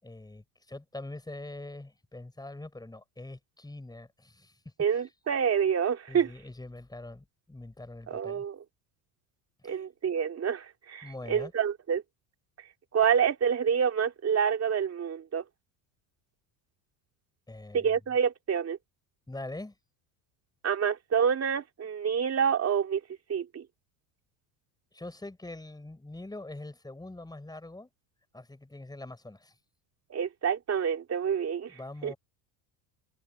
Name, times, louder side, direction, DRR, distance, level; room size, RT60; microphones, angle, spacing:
voice 1, 0.0-4.6 4.9-5.1 6.1-8.5 9.6-9.9 11.0-11.5 17.5-18.0 19.3-19.7 24.9-27.9 28.3-29.5 31.7-32.2, left 2 dB, 10° left, 6.6 m, -43 dB
voice 2, 4.8-6.3 8.1-8.6 9.6-12.0 12.9-15.4 17.7-18.8 20.6-23.0 23.3-23.6 30.1-31.7 32.0-32.1, right 7 dB, 35° right, 3.0 m, -27 dB
supercardioid pair, 95°, 45 cm